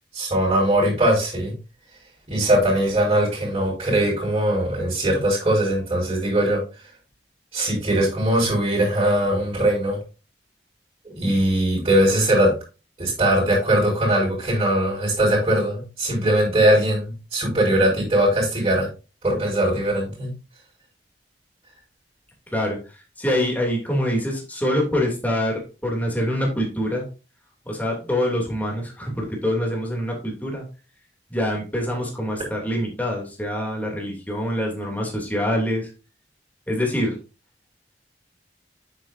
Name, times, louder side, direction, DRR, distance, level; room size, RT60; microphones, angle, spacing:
voice 1, 0.1-1.5 2.3-6.6 7.5-10.0 11.2-12.5 13.0-18.9 19.2-20.3, right 1 dB, 30° right, -9 dB, 5.3 m, -20 dB
voice 2, 22.5-27.0 27.7-30.6 31.3-35.9 36.7-37.2, equal, 10° left, -1 dB, 2.9 m, -25 dB
9.5 x 8.2 x 2.7 m, 0.32 s
head